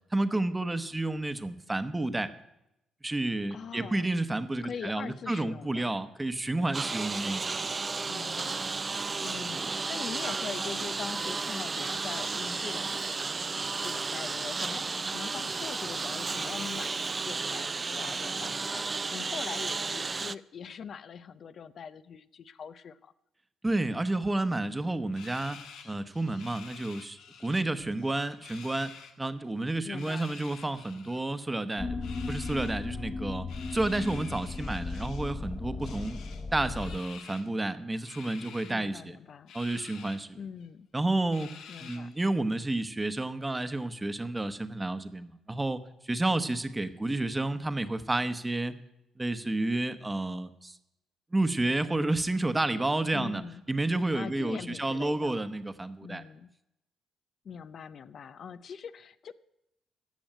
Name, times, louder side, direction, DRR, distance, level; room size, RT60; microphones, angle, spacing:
voice 1, 0.1-2.3 3.0-7.4 23.6-36.2 36.5-39.2 39.5-40.4 40.9-41.5 41.8-48.7 49.2-50.8 51.3-53.4 53.7-56.2, right 2 dB, 15° right, 10 dB, 1.0 m, -30 dB
voice 2, 3.5-4.1 4.6-5.9 8.1-8.8 9.2-18.9 19.1-23.1 29.8-30.4 38.7-39.5 40.4-40.9 41.7-42.1 53.1-53.6 54.1-55.4 56.0-56.5 57.4-59.3, left 7 dB, 55° left, 13 dB, 0.5 m, -42 dB
Engine, 6.7-20.4, right 4 dB, 30° right, 0.4 m, -33 dB
sound 1, 25.1-27.6 27.9-29.1 29.9-31.2 32.0-32.8 33.5-35.4 35.8-37.5 38.0-38.8 39.5-40.2 40.6-40.7 41.3-42.2, left 7 dB, 85° left, 1.4 m, -49 dB
sound 2, 31.8-37.0, left 3 dB, 30° left, 1.2 m, -36 dB
15.0 x 6.3 x 9.0 m, 0.85 s
cardioid pair, 90°, 0 cm